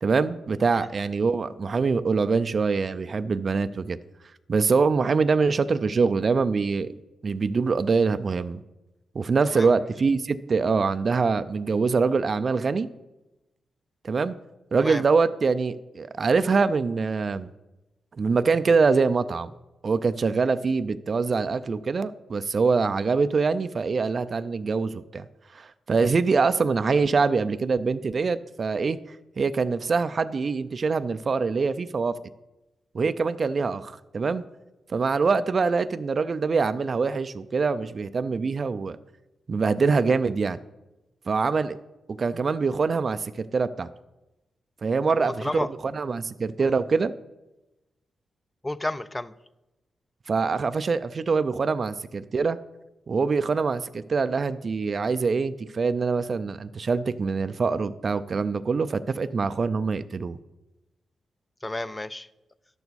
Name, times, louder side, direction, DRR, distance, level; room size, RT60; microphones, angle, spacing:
voice 1, 0.0-4.0 4.5-6.9 7.2-8.6 9.2-12.9 14.0-14.3 14.7-17.5 18.2-19.5 19.8-25.2 25.5-29.0 29.4-32.1 32.9-34.4 34.9-39.0 39.5-40.6 41.3-41.8 42.1-43.9 44.8-47.1 50.3-52.6 53.1-60.4, right 4 dB, 50° right, 0.4 m, -24 dB
voice 2, 45.1-45.7 46.6-46.7 48.6-49.3 61.6-62.3, left 1 dB, 15° left, 0.4 m, -32 dB
11.5 x 6.9 x 4.1 m
cardioid pair, 80°, 0 cm